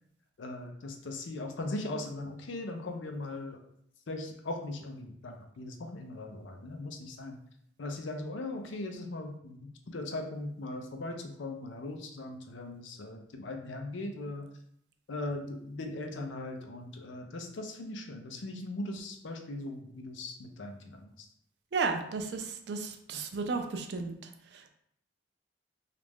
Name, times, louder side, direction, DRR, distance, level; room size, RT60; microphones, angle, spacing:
voice 1, 0.4-3.6 4.1-7.4 7.8-14.5 15.1-21.3, left 2 dB, 80° left, 4 dB, 0.5 m, -39 dB
voice 2, 21.7-24.1, right 4 dB, 60° right, 6 dB, 0.4 m, -33 dB
3.0 x 2.4 x 3.4 m, 0.72 s
head